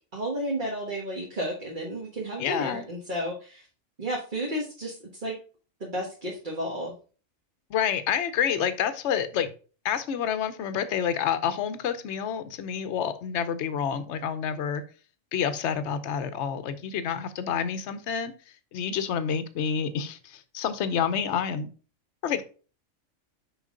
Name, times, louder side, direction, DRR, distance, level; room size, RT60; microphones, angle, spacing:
voice 1, 0.1-3.6 4.0-5.4 5.8-6.9, right 1 dB, 40° right, -2 dB, 1.6 m, -32 dB
voice 2, 2.4-2.8 7.7-9.5 9.8-14.8 15.3-18.3 18.7-21.7 22.2-22.4, left 8 dB, 65° left, 12 dB, 1.0 m, -28 dB
6.3 x 5.1 x 3.8 m, 0.36 s
omnidirectional pair, 1.4 m